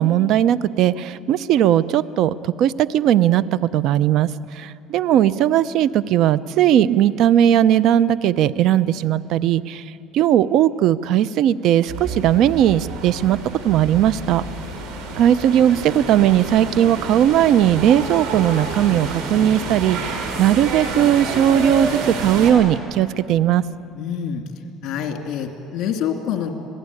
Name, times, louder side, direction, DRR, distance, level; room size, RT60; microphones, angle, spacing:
voice 1, 0.0-9.8 10.1-13.4 13.6-14.4 15.2-23.6, right 11 dB, 60° right, 17 dB, 0.6 m, -18 dB
sound 1, 11.9-22.5, right 3 dB, 75° right, 5.1 m, -29 dB
voice 2, 23.9-24.4 24.8-26.5, left 8 dB, 60° left, 4 dB, 2.8 m, -26 dB
27.0 x 18.5 x 9.8 m, 2.7 s
cardioid pair, 115°, 0 cm